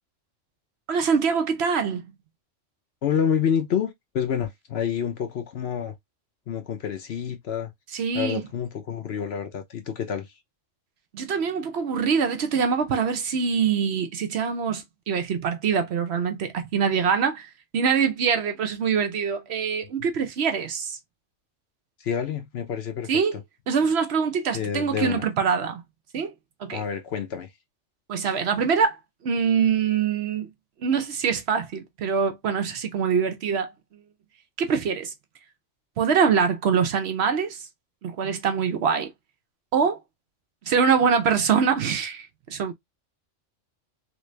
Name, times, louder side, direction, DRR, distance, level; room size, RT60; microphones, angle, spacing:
voice 1, 0.9-2.1 7.9-8.4 11.1-17.5 17.7-21.0 23.1-23.4 23.7-25.8 26.1-26.3 26.6-26.8 28.1-29.0 29.2-30.5 30.8-33.7 34.6-35.1 36.0-37.7 38.0-39.1 39.7-40.0 40.7-42.7, right 6 dB, 65° right, 0.8 m, -24 dB
voice 2, 3.0-5.9 6.5-7.7 8.1-10.3 22.0-23.1 24.5-25.2 26.7-27.5, left 8 dB, 60° left, 0.9 m, -28 dB
3.2 x 2.5 x 3.2 m
omnidirectional pair, 1.3 m